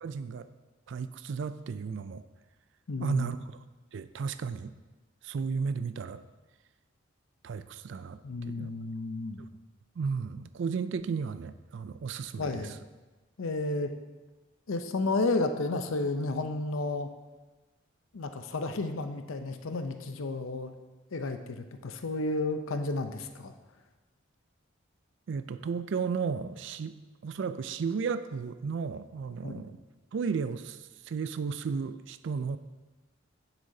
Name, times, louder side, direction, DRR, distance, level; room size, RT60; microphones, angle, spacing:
voice 1, 0.0-0.5 0.9-2.2 3.0-3.6 3.9-4.7 5.2-6.2 7.4-8.2 8.5-8.7 9.4-9.5 10.0-12.7 25.3-29.8 30.1-32.6, right 5 dB, 65° right, 13 dB, 0.3 m, -34 dB
voice 2, 2.9-3.3 8.2-9.4 12.4-12.7 13.4-13.9 14.7-17.1 18.1-20.7 21.1-23.5 29.4-29.6, left 2 dB, 80° left, 8 dB, 0.6 m, -32 dB
9.5 x 7.3 x 2.7 m, 1.2 s
head